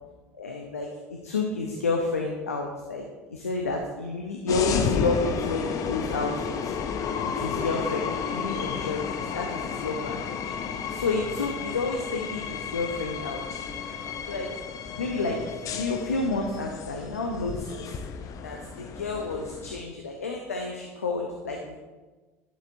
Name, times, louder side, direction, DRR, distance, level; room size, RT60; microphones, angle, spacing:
voice 1, 0.3-3.0 3.3-6.7 7.2-10.4 10.9-13.4 14.3-14.5 15.0-17.9 18.4-21.8, left 3 dB, 90° left, 2 dB, 0.6 m, -30 dB
sound 1, 4.5-19.8, left 6 dB, 50° left, 0.6 m, -32 dB
11.0 x 6.6 x 2.6 m, 1.3 s
hypercardioid pair, 65°, 8 cm